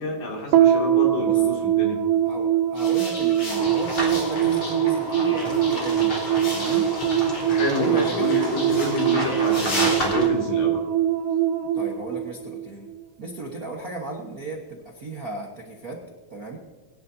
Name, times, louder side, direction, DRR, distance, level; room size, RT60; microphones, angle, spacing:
voice 1, 0.0-2.0 7.5-10.8, left 2 dB, 75° left, -1 dB, 4.0 m, -28 dB
sound 1, 0.5-13.0, right 10 dB, 80° right, 2.2 m, -23 dB
voice 2, 2.2-6.2 6.5-6.9 7.7-8.3 11.7-12.9 13.2-16.0 16.3-16.6, right 2 dB, 55° right, 0 dB, 1.0 m, -35 dB
sound 2, 2.8-10.1, left 1 dB, 50° left, 4.7 m, -34 dB
sound 3, 3.5-10.3, equal, 15° left, 3.3 m, -32 dB
21.5 x 10.5 x 2.7 m, 1.3 s
omnidirectional pair, 3.6 m